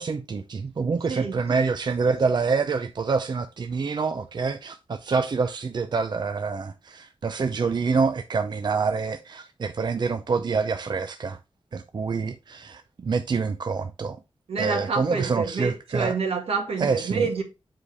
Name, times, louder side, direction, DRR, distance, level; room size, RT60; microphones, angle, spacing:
voice 1, 0.0-11.4 11.7-14.2 14.6-16.2 16.8-17.3, right 4 dB, 45° right, 0.5 m, -26 dB
voice 2, 14.5-17.4, right 4 dB, 75° right, 1.8 m, -28 dB
7.7 x 4.8 x 3.3 m
wide cardioid pair, 135°, 10 cm